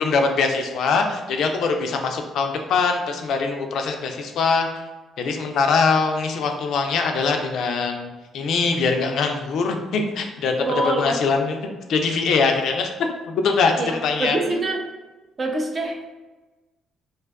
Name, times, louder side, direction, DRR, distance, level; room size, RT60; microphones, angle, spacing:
voice 1, 0.0-4.7 5.2-11.6 11.9-12.9 13.3-13.7 14.0-14.6, left 4 dB, 70° left, 4 dB, 0.3 m, -22 dB
voice 2, 10.6-11.2 13.8-14.8 15.4-16.0, right 2 dB, 40° right, 2 dB, 0.5 m, -25 dB
2.5 x 2.2 x 2.2 m, 1.2 s
supercardioid pair, 65°, 0 cm